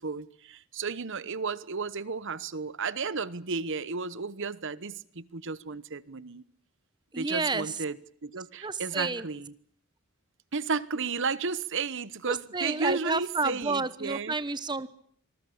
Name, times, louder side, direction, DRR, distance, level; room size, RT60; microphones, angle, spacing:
voice 1, 0.0-6.4 7.2-7.9 8.2-9.5 10.5-14.3, right 4 dB, 55° right, 1.0 m, -33 dB
voice 2, 7.1-7.8 8.6-9.3 12.3-14.9, right 3 dB, 20° right, 1.1 m, -30 dB
26.0 x 20.0 x 8.6 m
head